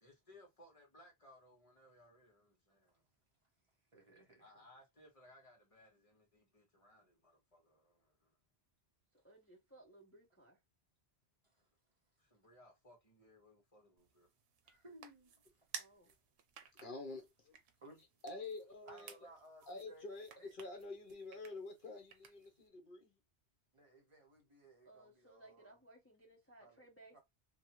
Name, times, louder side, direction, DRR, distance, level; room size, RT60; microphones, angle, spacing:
voice 1, 0.0-2.8 4.4-7.1 7.5-7.8 12.3-14.3, left 1 dB, 30° left, 1.3 m, -63 dB
voice 2, 3.9-4.4 11.4-11.6 14.6-15.3 17.8-18.0 18.9-20.1 20.4-20.5 23.7-25.8 26.6-26.8 27.1-27.2, right 1 dB, 30° right, 0.8 m, -60 dB
voice 3, 9.2-10.6 15.7-16.1 24.8-27.2, right 1 dB, 15° left, 0.6 m, -61 dB
sound 1, 14.0-22.7, right 7 dB, 90° right, 0.9 m, -56 dB
voice 4, 16.8-17.5 18.2-19.1 19.7-23.1, left 3 dB, 55° left, 1.0 m, -48 dB
2.8 x 2.3 x 2.9 m
omnidirectional pair, 1.1 m